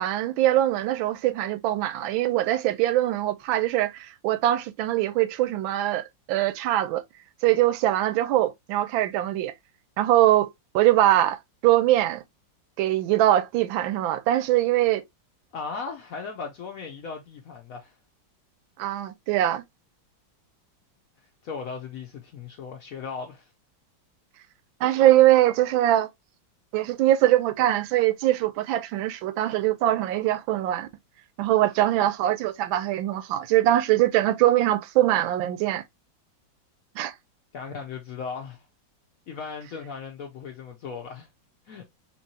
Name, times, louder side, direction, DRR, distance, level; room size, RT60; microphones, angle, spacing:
voice 1, 0.0-7.0 7.4-9.5 10.0-10.5 10.7-12.2 12.8-15.0 18.8-19.6 24.8-26.1 26.7-30.9 31.4-35.8 37.0-37.1, right 14 dB, 80° right, 1.3 m, -22 dB
voice 2, 15.5-17.9 21.4-23.5 37.5-38.7 39.3-41.3 41.7-41.8, left 5 dB, 80° left, 0.7 m, -37 dB
4.4 x 3.0 x 2.6 m
omnidirectional pair, 2.1 m